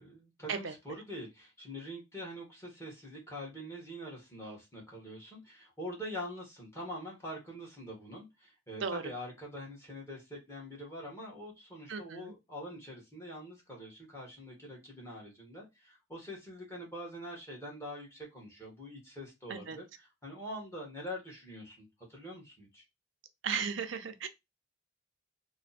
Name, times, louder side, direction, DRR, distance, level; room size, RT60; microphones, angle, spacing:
voice 1, 0.0-22.8, equal, 15° left, 1.4 m, -44 dB
voice 2, 11.9-12.3 19.5-19.8 23.4-24.3, right 6 dB, 65° right, 0.5 m, -35 dB
3.3 x 2.1 x 4.1 m
head